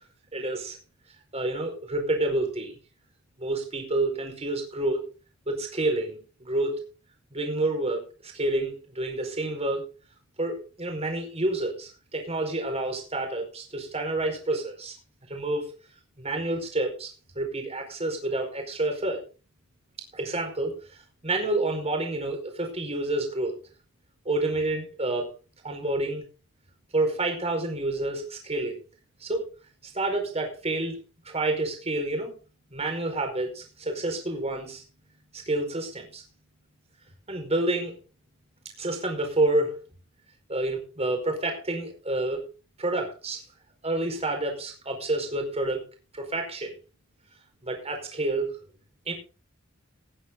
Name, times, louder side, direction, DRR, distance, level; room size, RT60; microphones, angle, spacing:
voice 1, 0.3-0.8 1.3-2.7 3.4-5.0 5.5-6.7 7.3-9.8 10.4-14.9 15.3-15.7 16.2-19.2 20.1-20.7 21.2-23.5 24.2-25.3 25.6-26.2 26.9-28.8 29.2-29.5 29.9-31.0 31.2-32.3 32.7-34.8 35.3-36.2 37.3-37.9 38.8-39.8 40.5-42.4 42.8-43.4 43.8-45.8 46.1-46.7 47.6-48.5 49.1-49.2, right 2 dB, 30° right, 3 dB, 4.9 m, -28 dB
19.5 x 9.4 x 3.8 m, 0.34 s
head